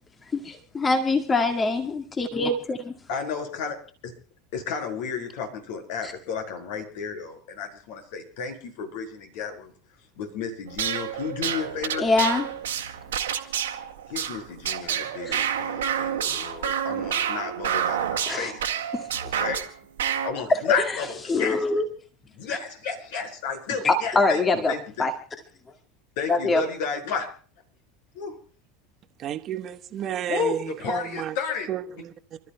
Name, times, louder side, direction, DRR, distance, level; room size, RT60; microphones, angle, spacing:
voice 1, 0.3-2.9 6.0-6.1 12.0-12.5 15.3-15.4 18.3-18.5 18.9-19.1 20.5-20.6 21.3-21.9 22.5-22.6 23.8-24.7 25.0-25.1 26.3-26.6, left 3 dB, 25° left, 1.9 m, -23 dB
voice 2, 3.1-3.8 4.0-4.1 4.5-9.7 10.2-12.1 14.1-18.8 19.2-19.6 20.2-21.6 22.3-25.1 26.2-27.3 28.1-28.4 30.3-31.7, left 6 dB, 65° left, 5.4 m, -32 dB
sound 1, 10.7-19.7 20.0-20.3, right 9 dB, 80° right, 1.8 m, -29 dB
voice 3, 29.2-31.3 31.7-32.4, right 10 dB, 45° right, 1.2 m, -32 dB
30.0 x 13.5 x 2.3 m
hypercardioid pair, 80°, 0 cm